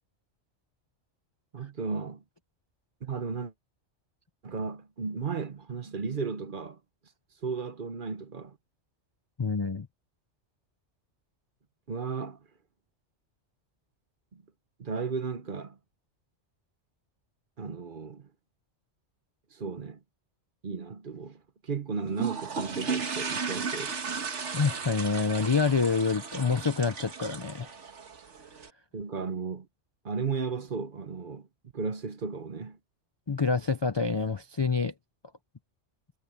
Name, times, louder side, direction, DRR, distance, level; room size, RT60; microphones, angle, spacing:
voice 1, 1.5-2.2 3.0-3.5 4.4-6.8 7.4-8.6 11.9-12.4 14.3-14.4 14.8-15.8 17.6-18.3 19.5-20.0 20.6-24.0 28.9-29.7 30.0-31.5 31.7-32.8, right 5 dB, 50° right, 1.1 m, -34 dB
voice 2, 9.4-9.9 24.5-27.7 33.3-34.9, left 4 dB, 35° left, 0.4 m, -27 dB
sound 1, 22.1-28.7, right 5 dB, 85° right, 1.8 m, -35 dB
omnidirectional pair, 1.2 m